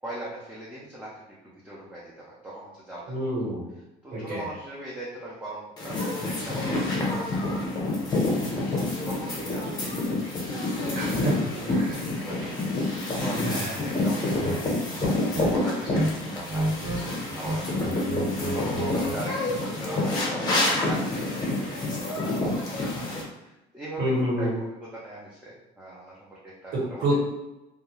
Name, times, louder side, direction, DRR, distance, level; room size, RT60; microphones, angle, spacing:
voice 1, 0.0-3.3 4.0-7.6 8.7-11.3 11.7-23.1 23.4-27.1, right 1 dB, 10° right, -7 dB, 0.5 m, -40 dB
voice 2, 3.1-3.7 4.1-4.4 10.9-12.0 13.4-13.7 24.0-24.5 27.0-27.1, right 1 dB, 65° right, -6 dB, 1.3 m, -28 dB
sound 1, 5.8-23.2, left 2 dB, 25° left, 0.7 m, -28 dB
sound 2, 14.4-14.6 14.9-16.1 16.4-17.0 17.3-19.2, right 1 dB, 85° right, 1.2 m, -30 dB
2.3 x 2.3 x 2.9 m, 0.95 s
cardioid pair, 145°, 17 cm